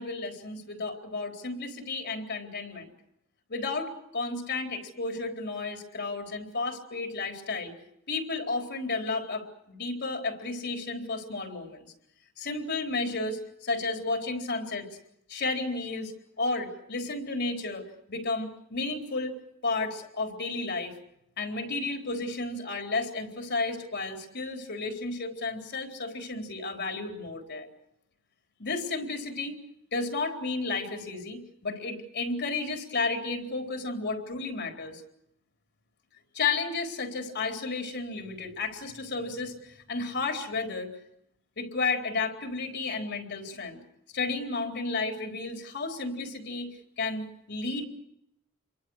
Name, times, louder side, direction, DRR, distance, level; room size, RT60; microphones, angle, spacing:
voice 1, 0.0-2.9 3.5-7.7 8.1-11.9 12.4-14.9 15.3-19.4 19.6-20.9 21.4-27.7 28.6-29.6 29.9-35.0 36.3-40.9 41.6-43.8 44.1-46.7 47.0-47.9, left 3 dB, 60° left, 4 dB, 4.0 m, -32 dB
29.0 x 23.5 x 6.4 m, 0.77 s
head